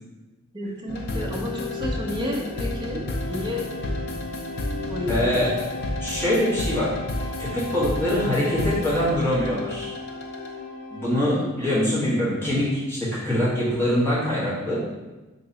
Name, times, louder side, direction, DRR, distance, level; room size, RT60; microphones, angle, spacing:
voice 1, 0.5-3.0 3.3-3.7 4.9-5.5 11.3-11.8, left 1 dB, 20° right, -2 dB, 0.5 m, -31 dB
sound 1, 0.9-11.3, left 2 dB, 45° left, 0.4 m, -31 dB
voice 2, 5.1-5.6 6.0-6.9 7.4-9.9 10.9-14.8, left 1 dB, 10° left, -10 dB, 1.1 m, -24 dB
2.9 x 2.8 x 3.8 m, 1.1 s
head